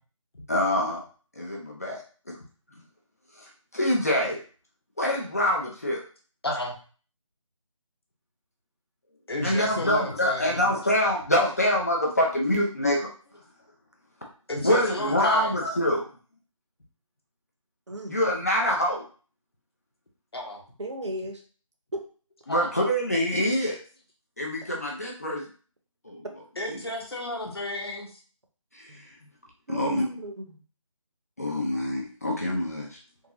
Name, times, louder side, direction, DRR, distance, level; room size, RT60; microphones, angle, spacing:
voice 1, 0.5-1.0 1.3-2.0 2.3-2.4 3.4-4.4 5.0-6.0 9.4-13.1 14.6-16.1 18.1-19.0 22.5-23.8 24.4-25.4 26.0-26.2 26.7-26.8 28.7-29.1 29.7-30.0 31.4-33.0, left 1 dB, 30° left, -2 dB, 0.5 m, -25 dB
voice 2, 6.4-6.7 9.3-10.7 14.5-15.5 20.3-20.6 22.5-22.7 26.6-28.1, left 1 dB, 45° left, 0 dB, 0.9 m, -32 dB
voice 3, 20.8-21.4 21.9-22.0 28.9-29.0 29.7-30.6, right 1 dB, 55° right, 3 dB, 0.7 m, -35 dB
3.6 x 2.4 x 2.9 m, 0.39 s
figure-of-eight pair, 160°, 17 cm